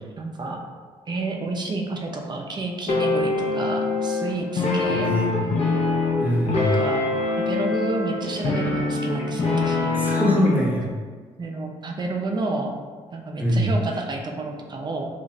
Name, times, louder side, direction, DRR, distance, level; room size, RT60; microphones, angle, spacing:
voice 1, 0.2-0.6 1.1-5.1 6.5-7.1 7.4-10.0 11.4-12.7 13.1-15.1, right 3 dB, 30° right, 1 dB, 0.5 m, -30 dB
sound 1, 2.9-10.6, left 3 dB, 50° left, 0.7 m, -24 dB
voice 2, 4.9-5.4 6.2-6.7 9.9-10.9 13.4-13.7, equal, 10° right, -5 dB, 0.9 m, -23 dB
2.5 x 2.4 x 3.0 m, 1.5 s
supercardioid pair, 75°, 14 cm